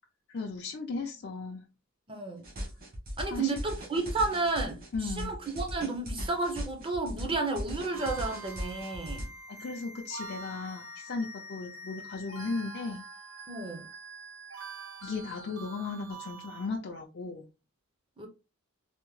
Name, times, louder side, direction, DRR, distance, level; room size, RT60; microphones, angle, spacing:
voice 1, 0.3-1.6 3.3-3.6 4.9-5.3 9.5-13.0 15.0-17.5, left 4 dB, 50° left, 0.4 m, -36 dB
voice 2, 2.1-2.5 3.2-9.3 13.5-13.9 18.2-18.3, right 3 dB, 25° right, 0.6 m, -32 dB
sound 1, 2.4-9.3, equal, 45° right, 1.2 m, -38 dB
sound 2, 7.9-16.7, right 2 dB, 65° right, 1.1 m, -45 dB
3.5 x 2.0 x 3.1 m
head